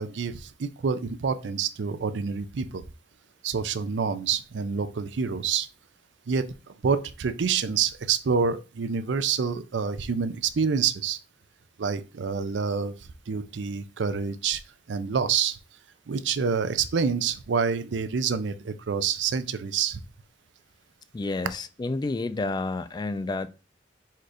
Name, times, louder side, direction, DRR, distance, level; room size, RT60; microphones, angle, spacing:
voice 1, 0.0-2.8 3.4-5.7 6.3-11.2 11.8-14.6 14.9-15.6 16.1-20.0, right 6 dB, 70° right, 0.5 m, -27 dB
voice 2, 21.1-23.5, left 3 dB, 25° left, 0.3 m, -30 dB
4.3 x 2.5 x 4.8 m
head